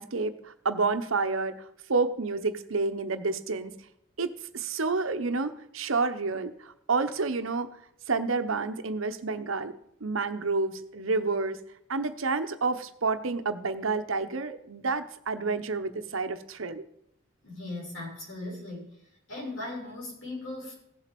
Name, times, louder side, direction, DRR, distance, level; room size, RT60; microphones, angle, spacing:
voice 1, 0.0-1.6 1.9-3.7 4.2-7.7 8.1-9.7 10.0-11.6 11.9-16.9, right 4 dB, 80° right, 9 dB, 0.9 m, -29 dB
voice 2, 17.4-18.9 19.3-20.7, left 2 dB, 70° left, -4 dB, 6.6 m, -38 dB
16.5 x 7.5 x 5.3 m, 0.76 s
head